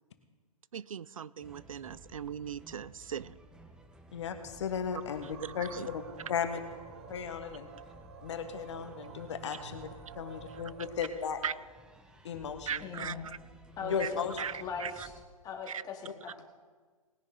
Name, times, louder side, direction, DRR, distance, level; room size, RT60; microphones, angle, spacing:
voice 1, 0.7-3.4 5.4-5.9 10.5-10.6 11.4-11.5 12.7-13.4 13.8-14.1 14.4-15.1 15.7-15.8, right 8 dB, 70° right, 20 dB, 0.4 m, -39 dB
sound 1, 1.4-15.2, right 1 dB, 5° right, 0.8 m, -55 dB
voice 2, 4.1-5.3 5.5-6.0 6.3-6.6 7.1-7.7 8.2-9.9 10.1-11.4 12.2-12.8 13.9-14.4, left 7 dB, 55° left, 7 dB, 1.4 m, -35 dB
sound 2, 4.9-11.1, right 6 dB, 45° right, 1.4 m, -50 dB
voice 3, 12.8-13.3 13.8-14.0 14.6-15.1 15.4-16.5, left 6 dB, 20° left, 1 dB, 2.1 m, -40 dB
19.5 x 10.5 x 3.9 m, 1.4 s
figure-of-eight pair, 120°, 18 cm